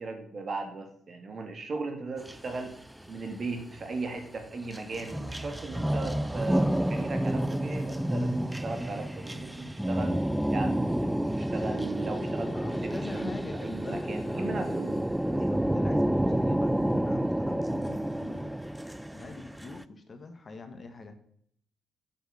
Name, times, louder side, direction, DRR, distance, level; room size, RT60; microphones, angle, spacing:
voice 1, 0.0-2.8 3.1-10.2 10.5-15.5, right 3 dB, 45° right, 5 dB, 2.2 m, -37 dB
sound 1, 2.2-3.9 4.4-19.8, right 1 dB, 5° right, 0.4 m, -29 dB
voice 2, 12.5-14.9 15.3-18.6 19.1-21.1, left 3 dB, 35° left, 7 dB, 1.5 m, -44 dB
8.1 x 6.3 x 6.4 m, 0.66 s
cardioid pair, 90°, 0 cm